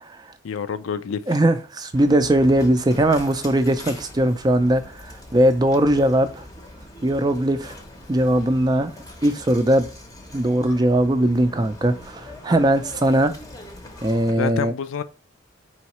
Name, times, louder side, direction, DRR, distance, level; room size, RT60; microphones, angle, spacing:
voice 1, 0.4-1.4 14.4-15.0, left 6 dB, 85° left, 0.4 m, -27 dB
voice 2, 1.3-4.8 5.3-6.4 7.0-7.8 8.1-8.9 9.2-9.9 10.3-13.3 14.0-14.7, right 1 dB, 20° right, 0.4 m, -19 dB
sound 1, 1.9-14.3, left 1 dB, 20° left, 0.7 m, -42 dB
4.7 x 3.1 x 2.9 m
head